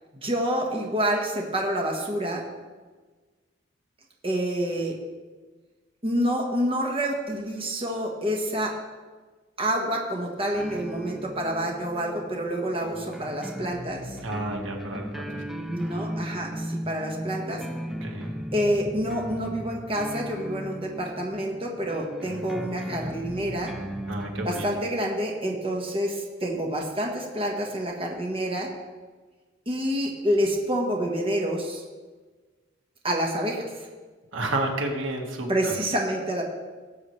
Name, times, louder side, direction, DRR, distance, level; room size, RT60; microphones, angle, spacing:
voice 1, 0.2-2.4 4.2-4.9 6.0-8.7 9.6-14.2 15.7-17.6 18.5-23.7 24.4-28.7 29.7-31.8 33.0-33.6 35.5-36.4, equal, 30° right, 0 dB, 1.4 m, -28 dB
sound 1, 10.5-24.6, equal, ahead, 0.5 m, -36 dB
voice 2, 14.2-15.4 18.0-18.2 24.1-24.6 34.3-35.8, right 2 dB, 80° right, 1 dB, 1.6 m, -31 dB
18.0 x 7.8 x 3.2 m, 1.4 s
head